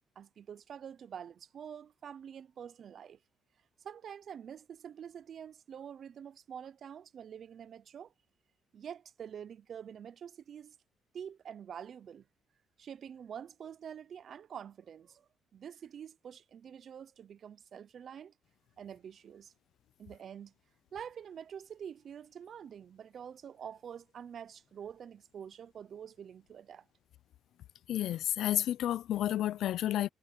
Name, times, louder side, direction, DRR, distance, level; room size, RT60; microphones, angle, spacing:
voice 1, 0.2-3.2 3.8-8.1 8.7-10.8 11.1-12.2 12.8-18.3 18.8-19.5 20.0-20.5 20.9-26.9, right 8 dB, 40° right, 0.4 m, -47 dB
voice 2, 27.9-30.1, left 12 dB, 60° left, 0.4 m, -31 dB
cardioid pair, 175°, 0 cm